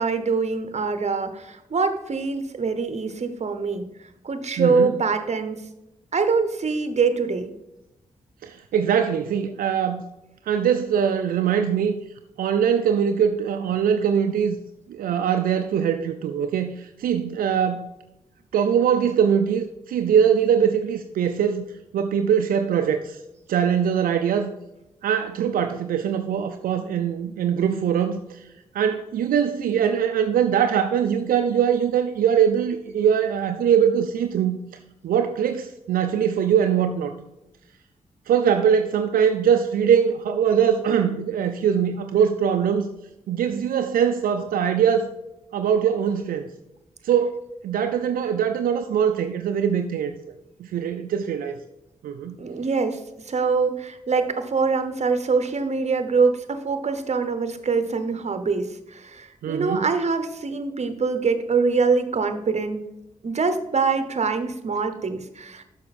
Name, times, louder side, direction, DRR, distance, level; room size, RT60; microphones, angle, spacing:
voice 1, 0.0-3.9 4.2-5.6 6.1-7.5 52.4-53.0 53.3-62.8 63.2-65.6, right 4 dB, 50° right, 10 dB, 1.0 m, -24 dB
voice 2, 4.6-4.9 8.4-10.1 10.5-11.9 12.4-14.6 14.9-17.9 18.5-21.6 21.9-23.2 23.5-24.5 25.0-28.5 28.7-34.6 35.0-37.1 38.3-42.9 43.3-45.1 45.5-46.5 47.0-50.1 50.6-51.6 52.0-52.4 59.4-59.8, right 8 dB, 80° right, 7 dB, 0.5 m, -22 dB
6.6 x 6.1 x 4.2 m, 0.94 s
supercardioid pair, 45°, 14 cm